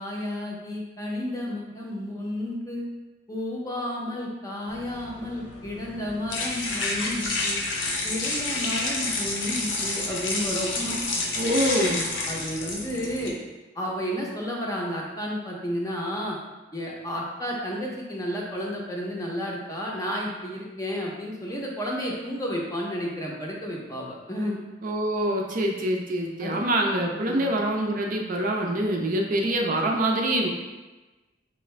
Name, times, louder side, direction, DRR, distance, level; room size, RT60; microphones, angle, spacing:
voice 1, 0.0-2.8 3.3-7.6 8.0-11.0 12.3-13.4 13.7-16.4 16.7-24.6 26.4-26.6 27.3-27.4, equal, 20° left, -2 dB, 0.6 m, -32 dB
sound 1, 4.7-13.3, left 2 dB, 85° left, 0.7 m, -29 dB
voice 2, 11.4-12.1 24.8-30.5, right 1 dB, 50° right, 1 dB, 0.5 m, -25 dB
4.5 x 2.5 x 3.1 m, 1.2 s
head